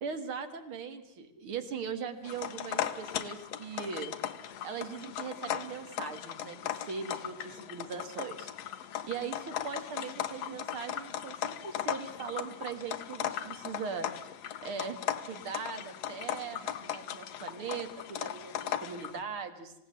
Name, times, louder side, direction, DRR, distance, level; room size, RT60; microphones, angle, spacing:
voice 1, 0.0-4.1 4.6-8.5 9.0-14.1 14.6-19.7, right 6 dB, 50° right, 8 dB, 2.3 m, -40 dB
sound 1, 2.2-19.2, left 11 dB, 65° left, 2.0 m, -38 dB
27.0 x 17.0 x 7.6 m, 0.87 s
omnidirectional pair, 3.3 m